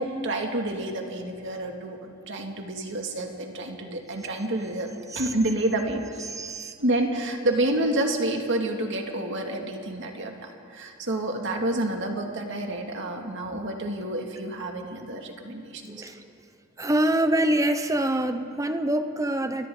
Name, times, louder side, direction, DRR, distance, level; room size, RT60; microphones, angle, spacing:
voice 1, 0.0-4.9 5.1-6.0 6.8-16.1, right 1 dB, 55° right, 2 dB, 2.4 m, -29 dB
voice 2, 6.2-6.8 15.9-16.5 16.8-19.7, right 1 dB, 15° right, 8 dB, 1.0 m, -26 dB
29.0 x 22.5 x 3.9 m, 2.3 s
head